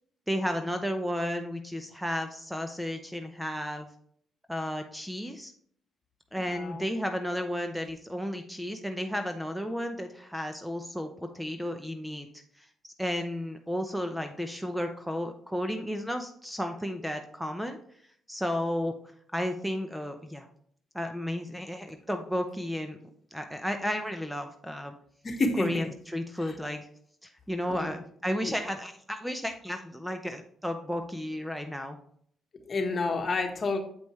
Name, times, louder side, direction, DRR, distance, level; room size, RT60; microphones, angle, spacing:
voice 1, 0.3-3.9 4.5-5.5 6.3-12.7 13.0-17.8 18.3-18.9 19.3-20.5 20.9-23.0 23.3-24.9 25.6-26.9 27.2-32.0, equal, 5° right, 7 dB, 0.7 m, -33 dB
voice 2, 6.4-6.8 25.2-25.9 26.4-26.5 27.7-27.9 28.4-28.5 32.7-33.8, left 3 dB, 40° left, 4 dB, 1.4 m, -29 dB
7.8 x 5.2 x 3.1 m, 0.63 s
cardioid pair, 90°, 0 cm